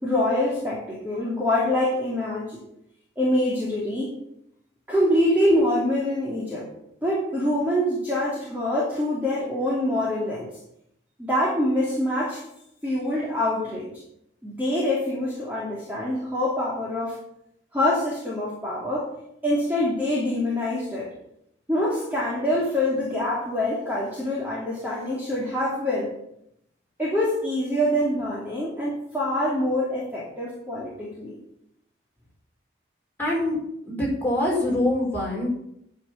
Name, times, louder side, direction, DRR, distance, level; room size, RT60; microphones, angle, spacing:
voice 1, 0.0-2.6 3.2-4.2 4.9-6.7 7.0-10.5 11.2-12.4 12.8-13.9 14.4-17.2 17.7-19.1 19.4-21.1 21.7-26.1 27.0-31.4, left 1 dB, 10° right, -7 dB, 2.8 m, -25 dB
voice 2, 33.2-33.6 33.9-35.5, left 1 dB, 10° left, -5 dB, 5.4 m, -24 dB
10.5 x 6.6 x 8.9 m, 0.77 s
head